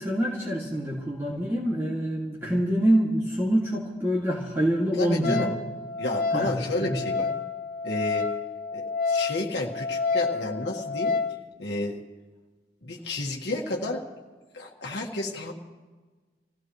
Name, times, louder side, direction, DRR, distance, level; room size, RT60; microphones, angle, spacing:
voice 1, 0.0-5.5 6.3-6.5 6.8-6.9, equal, 15° right, -5 dB, 2.3 m, -25 dB
voice 2, 5.0-5.5 6.0-7.3 7.8-8.3 8.7-11.1 11.6-12.0 12.8-14.1 14.5-15.5, left 1 dB, 80° left, -1 dB, 1.7 m, -31 dB
Wind instrument woodwind instrument, 5.2-11.4, left 4 dB, 50° left, 0.9 m, -29 dB
26.5 x 16.5 x 3.2 m, 1.3 s
head